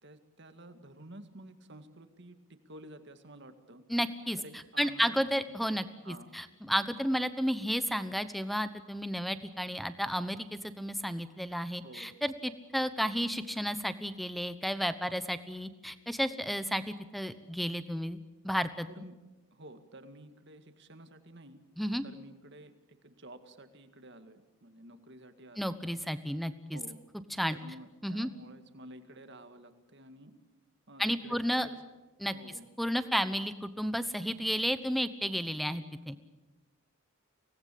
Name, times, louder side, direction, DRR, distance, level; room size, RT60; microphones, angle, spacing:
voice 1, 0.0-2.4 2.7-3.8 4.4-5.2 6.0-6.3 11.8-12.1 18.9-19.1 19.5-21.6 22.0-22.7 23.0-25.7 26.7-27.0 27.5-30.3 30.9-31.8 32.3-32.7, right 1 dB, 50° right, 9 dB, 2.0 m, -51 dB
voice 2, 3.9-4.4 4.8-18.2 18.4-18.9 21.8-22.0 25.6-26.8 27.3-27.6 28.0-28.3 31.0-31.7 32.2-32.3 32.8-36.2, equal, ahead, 12 dB, 1.0 m, -32 dB
25.0 x 19.0 x 8.5 m, 1.2 s
head